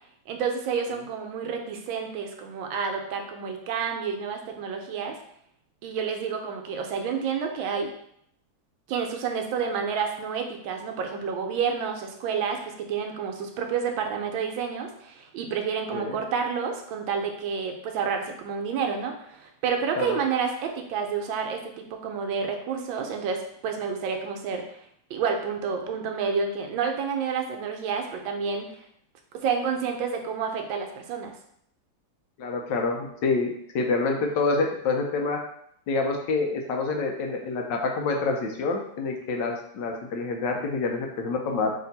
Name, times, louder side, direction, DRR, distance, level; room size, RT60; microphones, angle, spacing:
voice 1, 0.3-5.2 5.8-7.9 8.9-24.8 25.1-28.8 29.3-31.4, right 6 dB, 85° right, 4 dB, 1.4 m, -29 dB
voice 2, 32.4-35.4 35.9-41.7, left 3 dB, 75° left, 2 dB, 1.2 m, -27 dB
3.3 x 2.8 x 4.0 m, 0.70 s
omnidirectional pair, 2.1 m